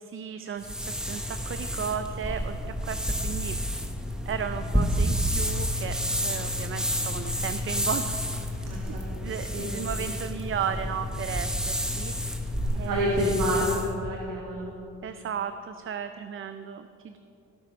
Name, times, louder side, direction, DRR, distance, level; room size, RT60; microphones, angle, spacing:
voice 1, 0.0-3.6 4.3-8.2 8.9-12.1 12.7-13.1 15.0-17.2, right 7 dB, 45° right, 9 dB, 0.6 m, -35 dB
sound 1, 0.6-13.9, equal, ahead, 1.3 m, -30 dB
voice 2, 8.7-9.0 9.3-9.7 12.8-14.7, equal, 90° right, -2 dB, 1.7 m, -28 dB
17.5 x 7.4 x 5.3 m, 2.7 s
cardioid pair, 90°, 30 cm